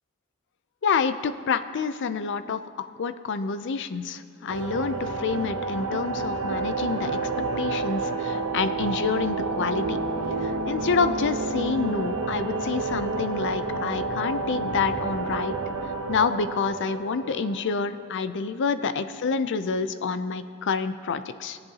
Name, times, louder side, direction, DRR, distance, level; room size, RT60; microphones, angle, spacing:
voice 1, 0.8-2.6 3.0-7.2 7.6-10.0 10.4-15.5 16.1-21.6, left 5 dB, 55° left, 11 dB, 0.5 m, -28 dB
sound 1, 4.5-18.1, right 3 dB, 80° right, 0.9 m, -29 dB
20.5 x 7.6 x 2.8 m, 2.4 s
head